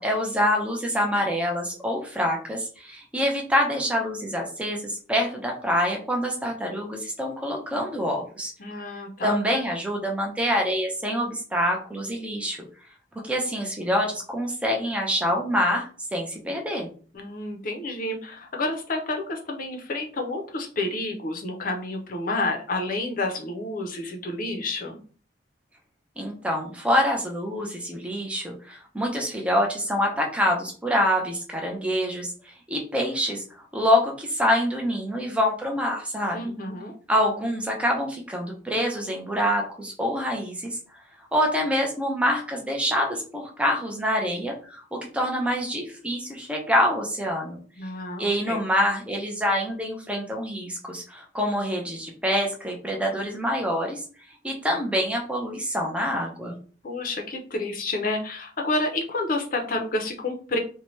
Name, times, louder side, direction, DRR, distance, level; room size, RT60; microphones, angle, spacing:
voice 1, 0.0-8.5 9.2-12.6 13.2-16.9 26.2-32.3 32.7-36.5 37.1-40.8 41.3-47.6 48.2-54.0 54.4-56.6, equal, 5° right, 0 dB, 0.5 m, -26 dB
voice 2, 8.6-9.3 17.1-25.0 36.3-36.9 47.8-48.6 56.8-60.6, left 2 dB, 50° left, 3 dB, 0.6 m, -29 dB
2.7 x 2.2 x 3.0 m, 0.41 s
head